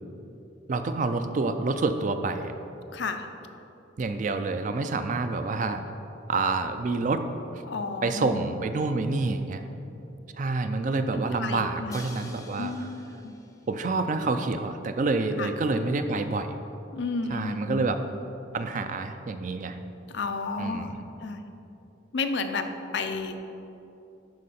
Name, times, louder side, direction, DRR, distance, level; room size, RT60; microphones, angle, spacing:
voice 1, 0.7-2.5 4.0-5.8 6.3-7.2 7.5-7.6 8.0-9.6 10.4-12.7 13.7-16.5 17.3-18.0 18.5-19.8 20.6-20.9, right 3 dB, 40° right, 9 dB, 0.4 m, -28 dB
voice 2, 2.9-3.3 7.6-8.6 11.1-12.0 12.6-13.4 15.4-15.5 16.9-17.9 20.1-20.9 21.2-21.5 22.1-22.6 22.9-23.4, left 4 dB, 70° left, 7 dB, 0.5 m, -32 dB
Crash cymbal, 11.9-13.9, left 3 dB, 20° left, 0.6 m, -48 dB
11.5 x 4.6 x 4.2 m, 2.9 s
head